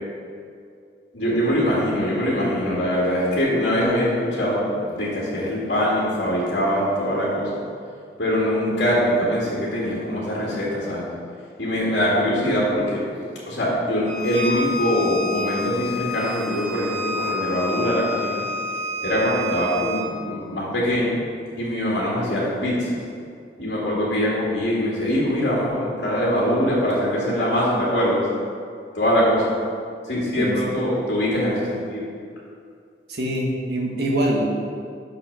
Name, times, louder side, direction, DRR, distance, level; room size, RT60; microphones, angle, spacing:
voice 1, 1.1-7.5 8.2-11.1 11.6-13.0 13.5-18.4 19.0-21.2 21.6-23.0 23.6-28.3 28.9-29.5 30.1-32.1, equal, 75° left, -6 dB, 2.0 m, -23 dB
Bowed string instrument, 14.1-20.1, left 1 dB, 35° right, 0.7 m, -29 dB
voice 2, 30.4-30.8 33.1-34.5, right 1 dB, 70° right, -2 dB, 1.3 m, -24 dB
6.0 x 5.9 x 6.3 m, 2.3 s
head